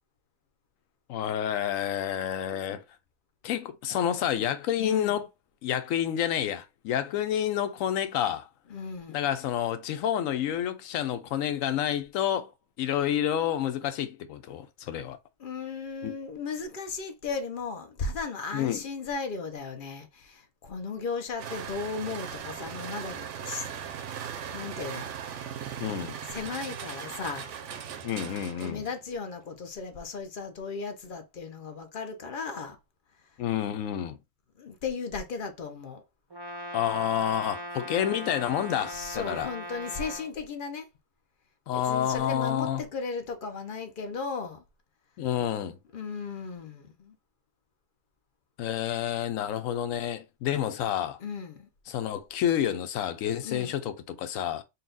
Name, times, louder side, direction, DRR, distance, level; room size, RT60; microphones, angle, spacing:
voice 1, 1.1-2.8 3.4-5.3 5.6-8.5 9.1-12.5 12.8-15.2 16.0-16.1 18.5-18.8 25.8-26.2 28.0-28.8 33.4-34.2 36.7-39.5 41.7-42.8 45.2-45.8 48.6-51.2 51.9-54.6, left 10 dB, 90° left, 1.0 m, -29 dB
voice 2, 4.8-5.2 8.7-9.2 15.4-23.7 24.5-25.4 26.3-27.5 28.6-32.8 34.6-36.0 38.8-40.9 41.7-44.6 45.9-47.1 51.2-51.7 53.4-53.8, left 4 dB, 50° left, 0.8 m, -36 dB
sound 1, 21.4-29.0, right 8 dB, 70° right, 1.0 m, -38 dB
Brass instrument, 36.3-40.3, left 1 dB, 25° right, 0.6 m, -39 dB
4.1 x 2.3 x 3.8 m
omnidirectional pair, 1.3 m